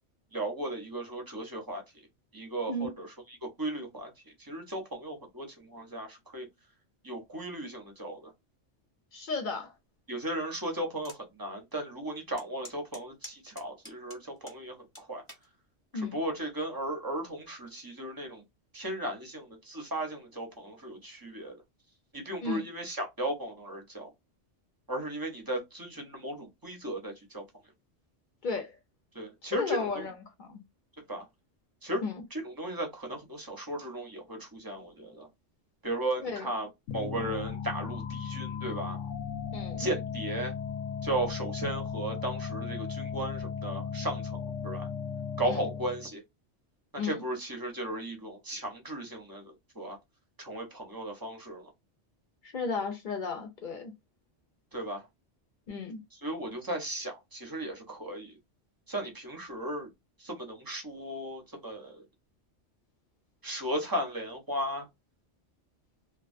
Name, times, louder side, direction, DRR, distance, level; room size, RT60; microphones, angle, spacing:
voice 1, 0.3-1.8 2.3-3.1 3.6-4.1 4.5-6.5 7.0-8.3 10.1-14.2 14.4-14.7 15.1-15.2 16.1-18.4 18.7-21.5 22.1-24.1 24.9-27.4 29.2-29.9 31.1-31.2 31.8-32.0 32.3-35.3 35.8-36.7 36.9-39.0 39.8-40.5 41.0-44.4 44.6-44.9 45.4-46.2 47.0-50.0 50.4-51.7 54.7-55.0 56.2-58.3 58.9-59.9 60.2-61.9 63.4-64.8, right 1 dB, 30° right, 0.4 m, -35 dB
voice 2, 9.1-9.7 15.9-16.2 22.4-22.6 28.4-28.8 29.5-30.6 32.0-32.2 36.2-36.5 39.5-39.9 45.4-45.7 47.0-47.2 52.4-53.9 55.7-56.0, left 4 dB, 55° left, 0.6 m, -34 dB
sound 1, 11.0-11.2 11.7-11.8 12.4-14.6 14.9-15.5 16.2-16.5, left 1 dB, 15° left, 0.7 m, -48 dB
sound 2, 36.9-46.1, left 6 dB, 85° left, 0.9 m, -36 dB
2.3 x 2.2 x 2.4 m
omnidirectional pair, 1.2 m